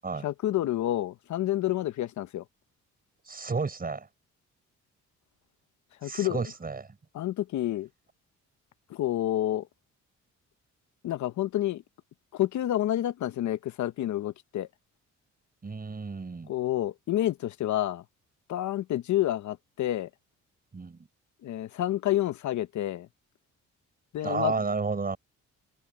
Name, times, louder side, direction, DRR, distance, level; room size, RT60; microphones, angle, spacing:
voice 1, 0.2-2.4 6.0-6.4 7.1-7.9 8.9-9.7 11.0-11.8 12.3-14.7 16.5-18.0 18.5-20.1 21.4-23.1 24.1-24.5, left 13 dB, 70° left, 0.9 m, -29 dB
voice 2, 3.3-4.1 6.0-6.9 15.6-16.5 20.7-21.1 24.2-25.2, right 4 dB, 30° right, 7.1 m, -31 dB
cardioid pair, 90°, 30 cm